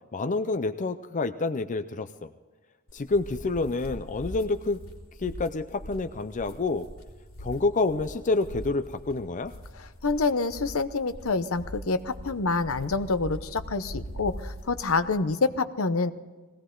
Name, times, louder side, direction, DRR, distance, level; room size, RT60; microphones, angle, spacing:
voice 1, 0.1-2.3 2.9-4.8 5.2-6.9 7.4-9.5, left 3 dB, 35° left, 10 dB, 0.5 m, -28 dB
sound 1, 2.9-15.2, equal, 85° left, 2.8 m, -42 dB
voice 2, 9.8-16.1, left 3 dB, 70° left, 12 dB, 0.8 m, -27 dB
19.5 x 16.5 x 3.8 m, 1.3 s
head